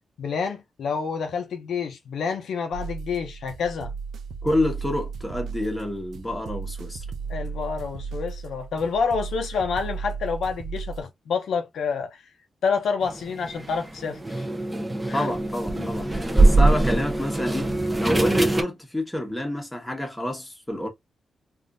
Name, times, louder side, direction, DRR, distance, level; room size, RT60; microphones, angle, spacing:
voice 1, 0.2-3.9 7.3-12.2 12.6-14.5 15.1-15.3 15.8-15.9, left 5 dB, 85° left, 0.7 m, -28 dB
sound 1, 2.7-11.0, right 5 dB, 80° right, 0.4 m, -35 dB
voice 2, 4.4-7.0 15.1-20.9, left 1 dB, 10° left, 1.1 m, -28 dB
sound 2, 13.0-18.6, right 2 dB, 10° right, 0.6 m, -22 dB
3.5 x 2.5 x 2.5 m
wide cardioid pair, 125°, 0 cm